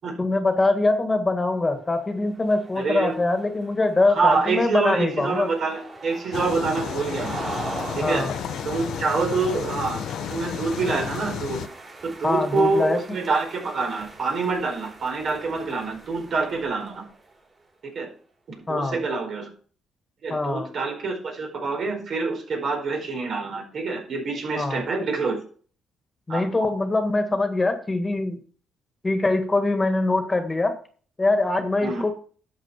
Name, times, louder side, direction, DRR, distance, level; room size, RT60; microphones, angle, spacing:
voice 1, 0.2-5.5 8.0-8.3 12.2-13.2 18.7-19.0 20.3-20.7 24.5-24.8 26.3-28.4 29.0-30.8 31.2-32.1, left 2 dB, 20° left, 8 dB, 1.7 m, -23 dB
sound 1, 1.8-17.5, right 3 dB, 25° right, 4.5 m, -41 dB
voice 2, 2.8-3.1 4.0-7.4 7.9-8.3 8.6-10.0 10.3-11.6 12.0-17.0 17.9-18.1 18.5-19.5 20.2-25.3 26.3-26.4 31.8-32.0, right 4 dB, 60° right, 3 dB, 4.8 m, -26 dB
sound 2, 6.3-11.7, left 9 dB, 80° left, 0.8 m, -32 dB
11.5 x 7.7 x 4.5 m, 0.43 s
cardioid pair, 90°, 0 cm